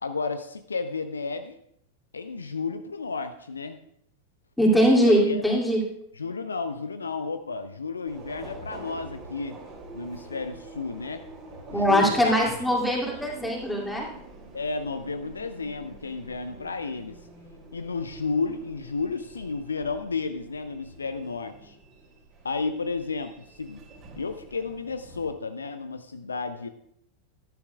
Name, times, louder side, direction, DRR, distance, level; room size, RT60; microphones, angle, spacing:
voice 1, 0.0-1.6 2.1-3.8 5.0-5.4 6.1-9.6 9.9-11.2 11.7-13.1 14.5-17.2 17.7-21.8 22.4-23.8 24.2-26.7, left 4 dB, 75° left, 10 dB, 0.5 m, -32 dB
voice 2, 4.6-5.8 11.7-14.1, equal, 5° left, -2 dB, 2.5 m, -21 dB
Subway metro underground, 8.1-25.3, right 2 dB, 30° right, 2.6 m, -46 dB
13.5 x 11.0 x 2.3 m, 0.73 s
figure-of-eight pair, 90°, 0 cm